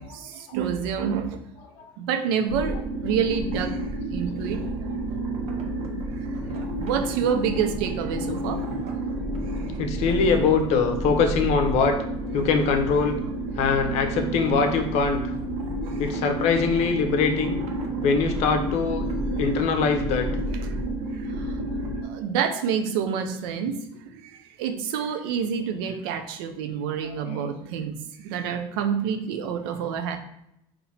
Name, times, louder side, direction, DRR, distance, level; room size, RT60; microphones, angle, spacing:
voice 1, 0.0-1.4 2.0-2.8 3.0-3.8 4.1-4.6 6.3-9.0 9.5-9.7 15.8-16.0 21.1-21.6 22.0-23.8 24.1-24.3 24.6-30.2, right 7 dB, 90° right, 7 dB, 0.5 m, -28 dB
sound 1, 2.5-22.0, right 1 dB, 60° right, 1.0 m, -30 dB
voice 2, 9.8-12.0 12.3-13.1 13.6-15.2 16.0-17.6 18.0-19.0 19.4-20.3 27.0-27.4, left 5 dB, 65° left, 5 dB, 0.7 m, -23 dB
4.2 x 2.6 x 4.1 m, 0.80 s
supercardioid pair, 95°, 12 cm